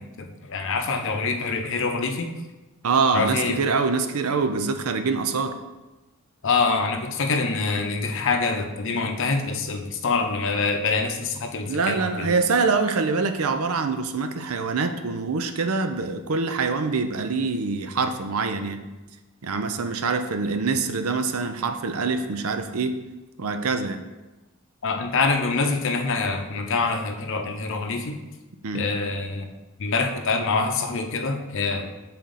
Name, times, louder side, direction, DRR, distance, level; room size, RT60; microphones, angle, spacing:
voice 1, 0.0-2.3 3.1-3.6 6.4-12.4 24.8-28.2 28.7-29.5 29.8-31.9, left 4 dB, 60° left, 4 dB, 0.7 m, -25 dB
voice 2, 2.8-5.6 11.7-18.8 19.4-23.0 23.4-24.0 28.6-28.8, right 4 dB, 75° right, 8 dB, 0.6 m, -25 dB
7.1 x 4.3 x 3.8 m, 1.1 s
head